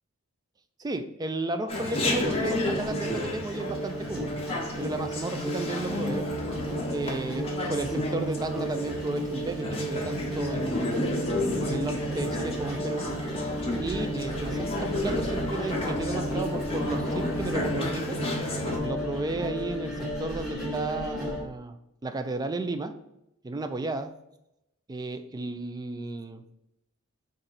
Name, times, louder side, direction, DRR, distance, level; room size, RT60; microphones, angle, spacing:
voice 1, 0.8-4.4 4.8-6.3 6.9-10.9 11.6-13.1 13.8-18.2 18.8-21.8 22.0-23.0 23.4-24.1 24.9-26.4, right 2 dB, 20° right, 8 dB, 0.3 m, -33 dB
Chatter, 1.7-18.8, left 2 dB, 25° left, 0.8 m, -32 dB
sound 1, 2.0-21.4, right 1 dB, ahead, 1.0 m, -33 dB
4.1 x 2.6 x 3.8 m, 0.84 s
head